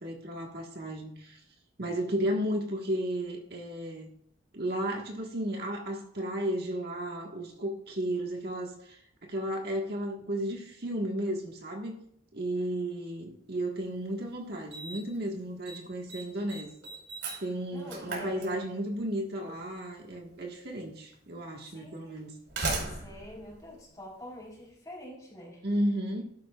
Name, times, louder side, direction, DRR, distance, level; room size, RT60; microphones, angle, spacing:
voice 1, 0.0-1.4 1.8-4.1 4.5-12.0 12.3-16.7 17.4-22.3 25.6-26.2, right 1 dB, 55° right, 1 dB, 1.7 m, -33 dB
Slam, 13.9-14.0 14.7-15.2 15.4-15.8 16.1-19.0 20.1-20.2 21.1-21.2 22.2-24.5, right 3 dB, 90° right, 4.8 m, -37 dB
voice 2, 17.7-18.7 21.7-22.0 22.5-25.6, left 1 dB, 20° left, -2 dB, 4.2 m, -46 dB
13.5 x 12.0 x 2.5 m, 0.69 s
head